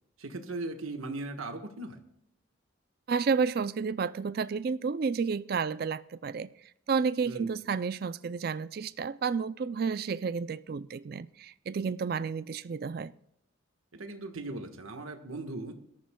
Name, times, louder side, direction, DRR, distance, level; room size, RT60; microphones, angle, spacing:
voice 1, 0.2-2.0 7.2-7.5 13.9-15.7, right 2 dB, 90° right, 1.4 m, -38 dB
voice 2, 3.1-6.5 6.9-13.1, right 5 dB, 45° right, 0.4 m, -31 dB
21.5 x 13.5 x 2.3 m
head